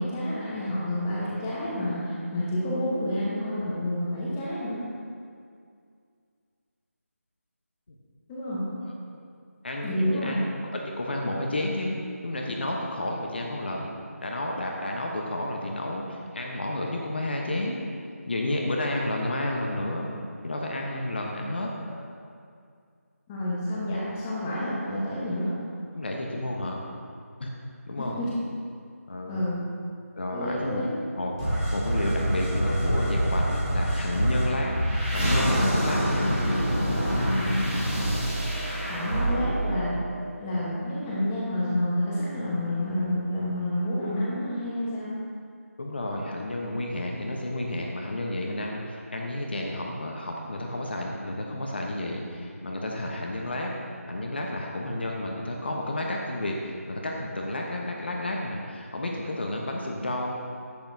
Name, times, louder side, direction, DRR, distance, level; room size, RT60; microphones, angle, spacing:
voice 1, 0.0-4.8 8.3-8.7 9.8-10.4 23.3-25.5 28.0-28.3 29.3-29.6 30.3-30.9 38.8-40.0 40.4-45.1, left 1 dB, 10° left, -8 dB, 1.1 m, -29 dB
voice 2, 9.6-10.5 10.7-12.0 12.2-13.9 14.2-17.8 18.3-20.1 20.4-21.7 25.9-26.8 27.4-27.5 27.9-28.2 29.1-29.5 30.2-30.8 31.2-34.8 35.1-36.4 45.8-53.7 54.1-60.3, left 1 dB, 45° left, 0 dB, 1.0 m, -31 dB
sound 1, 31.4-40.7, equal, 15° right, 2.1 m, -26 dB
10.5 x 8.6 x 2.7 m, 2.2 s
figure-of-eight pair, 170°, 8 cm